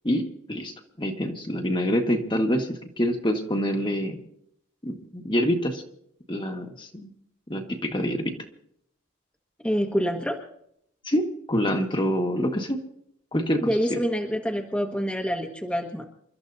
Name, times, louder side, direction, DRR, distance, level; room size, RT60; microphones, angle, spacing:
voice 1, 0.0-4.2 4.8-5.8 6.3-7.1 7.5-8.3 11.0-12.8 13.3-13.7, equal, 25° left, 3 dB, 1.7 m, -26 dB
voice 2, 9.6-10.4 13.6-16.1, equal, 5° left, 0 dB, 1.4 m, -26 dB
29.0 x 13.5 x 2.7 m, 0.71 s
head